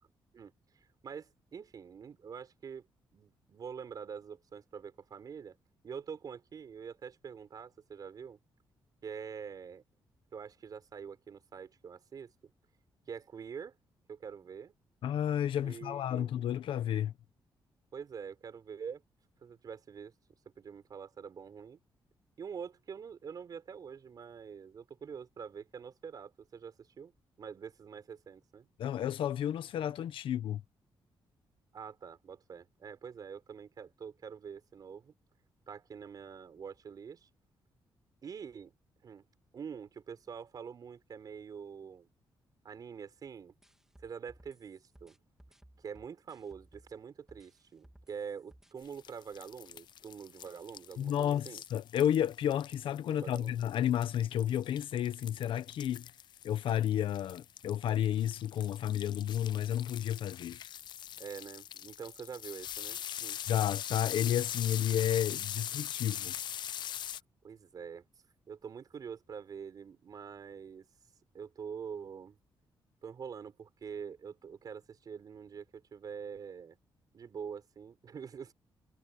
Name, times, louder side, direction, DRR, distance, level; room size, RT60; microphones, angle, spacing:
voice 1, 0.3-2.9 3.1-5.6 5.8-8.4 9.0-9.8 10.3-12.3 13.1-13.7 14.1-14.7 15.6-16.3 17.9-19.0 19.4-20.1 20.6-21.8 22.4-27.1 27.4-28.7 31.7-35.1 35.7-37.3 38.2-38.7 39.0-39.2 39.5-42.1 42.6-43.5 44.0-45.2 45.8-51.6 53.1-53.6 61.2-63.4 67.4-68.0 68.5-70.8 71.3-72.4 73.0-76.8 77.1-78.5, right 6 dB, 50° right, 4.9 m, -45 dB
voice 2, 15.0-17.1 28.8-30.6 51.0-56.1 56.4-60.6 63.5-66.3, left 10 dB, 85° left, 1.1 m, -31 dB
sound 1, 43.6-47.0 47.3-48.7, right 1 dB, 5° right, 3.1 m, -60 dB
sound 2, 48.8-67.2, left 10 dB, 60° left, 0.4 m, -42 dB
wide cardioid pair, 145°, 9 cm